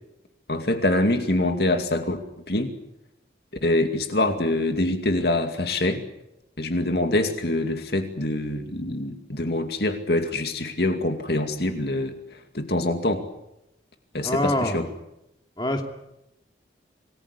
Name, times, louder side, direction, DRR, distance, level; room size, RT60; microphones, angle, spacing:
voice 1, 0.5-2.2 2.5-2.7 3.6-6.0 6.6-13.2 14.1-14.8, left 1 dB, 60° left, 6 dB, 2.4 m, -25 dB
voice 2, 14.2-14.8 15.6-15.8, left 1 dB, 25° left, 4 dB, 2.6 m, -25 dB
27.0 x 20.0 x 8.4 m, 0.85 s
head